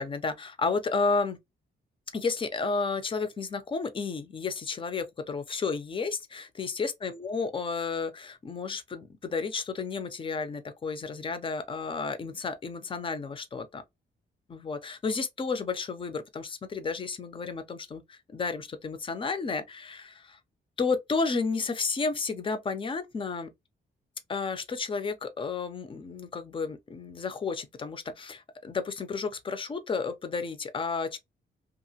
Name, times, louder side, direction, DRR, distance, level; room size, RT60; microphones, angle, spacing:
voice 1, 0.0-1.4 2.1-13.8 14.5-20.4 20.8-23.5 24.3-31.2, left 4 dB, 25° left, 0.4 m, -32 dB
2.8 x 2.4 x 2.7 m
wide cardioid pair, 170°, 19 cm